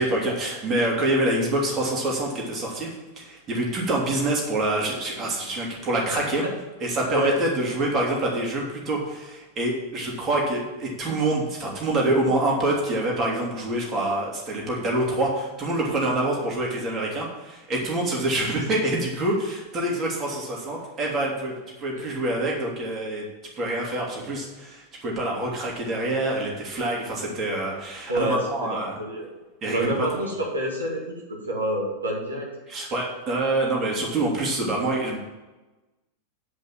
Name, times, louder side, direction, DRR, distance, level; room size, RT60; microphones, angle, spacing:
voice 1, 0.0-6.4 6.8-23.2 23.6-29.0 29.6-30.3 32.7-35.2, right 1 dB, 30° right, -2 dB, 2.6 m, -26 dB
voice 2, 6.1-6.5 7.1-7.4 21.9-22.1 28.1-29.3 29.7-31.0 31.3-32.5, right 1 dB, 75° right, -3 dB, 2.2 m, -27 dB
9.6 x 5.3 x 7.3 m, 1.1 s
figure-of-eight pair, 90°, 0 cm